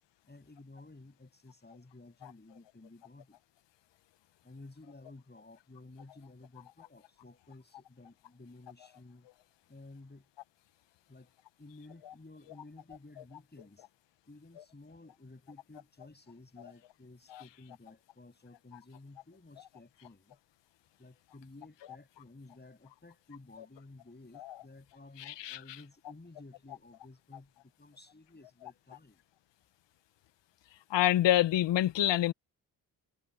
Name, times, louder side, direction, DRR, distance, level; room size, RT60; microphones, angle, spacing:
voice 1, 0.2-3.4 4.4-9.3 9.7-10.3 11.1-13.9 14.2-20.4 21.0-29.2, left 2 dB, 20° left, 7.7 m, -54 dB
voice 2, 25.2-25.6 30.9-32.3, left 13 dB, 65° left, 1.2 m, -27 dB
hypercardioid pair, 45°, 46 cm